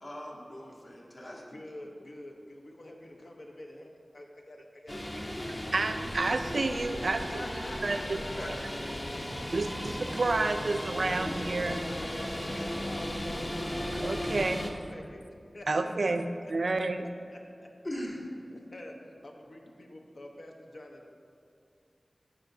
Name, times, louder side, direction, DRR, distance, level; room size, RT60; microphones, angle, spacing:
voice 1, 0.0-1.6 8.3-8.5 11.2-11.4 17.8-18.3, left 1 dB, 50° left, -4 dB, 1.4 m, -40 dB
voice 2, 1.5-5.9 7.0-8.6 9.0-9.5 10.9-11.0 11.7-14.6 14.9-15.2 15.5-16.5 17.3-17.7 18.5-19.0 19.2-21.1, left 1 dB, 70° left, 1 dB, 0.9 m, -48 dB
sound 1, 4.9-14.7, equal, 25° left, 0.7 m, -36 dB
voice 3, 5.7-8.2 9.5-11.8 13.9-14.7 15.7-17.1, right 3 dB, 70° right, 8 dB, 0.4 m, -30 dB
12.0 x 5.1 x 2.7 m, 2.4 s
wide cardioid pair, 75°, 0 cm